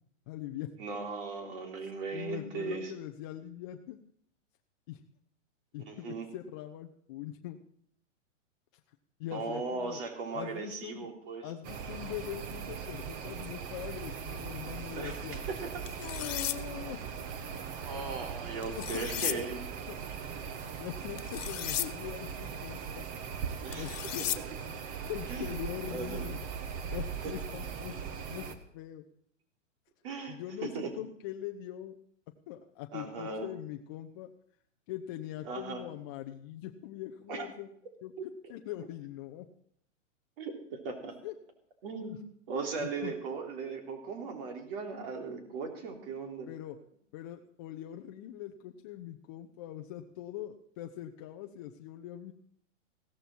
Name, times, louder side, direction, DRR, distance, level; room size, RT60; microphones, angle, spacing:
voice 1, 0.3-0.7 2.1-4.0 4.9-5.0 5.7-7.6 9.2-10.0 10.3-11.1 11.4-15.4 16.0-17.0 18.9-19.4 19.9-20.0 20.8-23.1 23.8-24.3 25.1-26.4 26.9-27.9 28.3-28.4 28.7-29.0 30.3-31.9 32.5-34.3 34.9-37.7 38.0-38.1 38.5-39.5 41.2-41.3 42.8-43.1 46.5-46.8 47.1-52.3, left 12 dB, 20° left, 4 dB, 0.5 m, -42 dB
voice 2, 0.8-2.9 5.9-6.3 9.3-11.5 14.9-15.9 17.8-19.6 23.6-24.0 24.8-24.9 25.3-25.5 25.9-26.3 27.2-27.3 30.0-30.9 32.9-33.5 35.4-35.8 37.3-37.5 38.2-38.3 40.4-41.1 41.8-42.1 42.5-46.5, right 4 dB, 45° right, 3 dB, 3.6 m, -38 dB
sound 1, 11.6-28.6, right 6 dB, 20° right, 1.0 m, -40 dB
sound 2, 15.9-16.6 18.6-19.4 21.2-21.9 23.7-24.4, left 11 dB, 75° left, 1.4 m, -35 dB
16.0 x 14.0 x 4.5 m, 0.67 s
hypercardioid pair, 155°, 38 cm